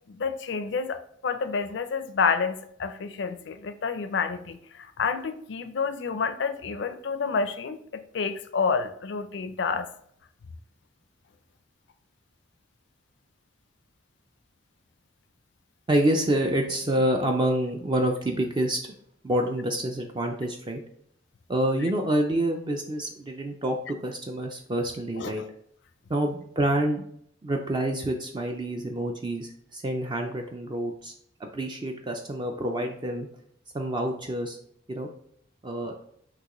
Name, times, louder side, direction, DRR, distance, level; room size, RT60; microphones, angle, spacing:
voice 1, 0.1-9.9 25.2-25.3, left 5 dB, 60° left, 10 dB, 0.4 m, -29 dB
voice 2, 15.9-18.8 19.2-20.8 21.5-25.4 26.1-27.0 27.4-31.1 31.4-33.3 33.7-34.6 34.9-35.1 35.6-35.9, right 1 dB, 25° right, 3 dB, 0.3 m, -27 dB
6.0 x 2.9 x 3.0 m, 0.67 s
head